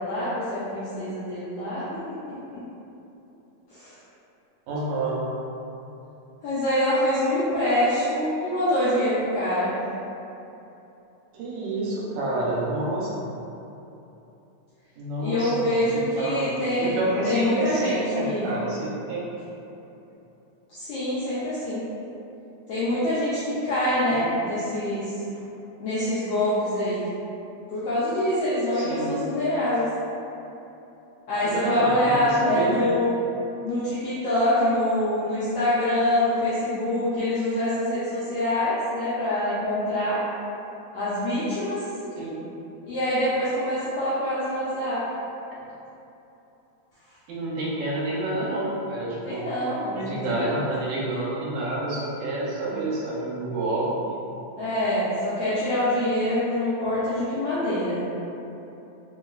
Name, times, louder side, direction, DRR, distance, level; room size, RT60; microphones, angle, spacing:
voice 1, 0.0-1.8 3.7-3.9 6.4-9.7 15.2-18.5 20.7-21.8 22.7-25.1 25.8-27.0 27.7-29.9 31.3-33.2 33.6-40.2 40.9-41.8 42.8-45.0 49.2-50.6 54.6-58.0, left 1 dB, 90° left, -11 dB, 1.3 m, -25 dB
voice 2, 4.7-5.2 11.3-13.1 15.0-16.5 16.8-19.3 24.1-24.3 28.7-29.2 31.4-32.9 42.2-42.4 47.3-49.5 49.9-54.1, right 2 dB, 85° right, -6 dB, 1.9 m, -29 dB
4.7 x 2.3 x 2.3 m, 3.0 s
omnidirectional pair, 3.4 m